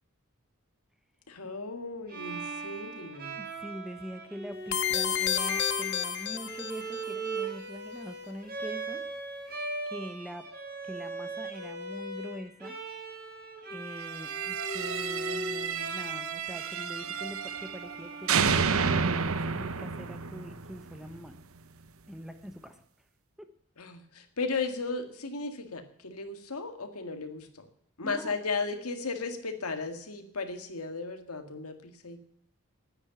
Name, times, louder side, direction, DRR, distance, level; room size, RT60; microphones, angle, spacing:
voice 1, 1.3-3.4 23.8-27.7 28.0-32.2, left 4 dB, 85° left, 7 dB, 1.9 m, -35 dB
Bowed string instrument, 2.1-19.0, right 2 dB, 45° right, 3.7 m, -39 dB
voice 2, 3.4-9.0 9.9-10.5 10.8-12.8 13.7-21.3 22.1-22.8 23.4-23.5 28.0-28.3, equal, ahead, 9 dB, 0.8 m, -43 dB
sound 1, 4.7-7.0, left 10 dB, 50° left, 0.8 m, -30 dB
sound 2, 14.1-18.0 18.3-21.3, right 6 dB, 70° right, 0.8 m, -31 dB
9.9 x 9.8 x 8.8 m, 0.72 s
head